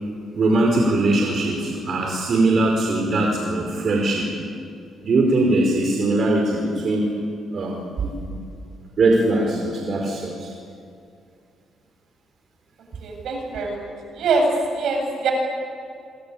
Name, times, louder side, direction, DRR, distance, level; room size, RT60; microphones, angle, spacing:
voice 1, 0.3-4.3 5.0-7.1 7.5-8.4 9.0-10.5, right 2 dB, 50° right, 1 dB, 5.1 m, -21 dB
voice 2, 13.0-13.9 14.1-14.5 14.7-15.3, right 4 dB, 70° right, 2 dB, 8.0 m, -23 dB
27.5 x 24.0 x 8.8 m, 2.4 s
cardioid pair, 90°, 0 cm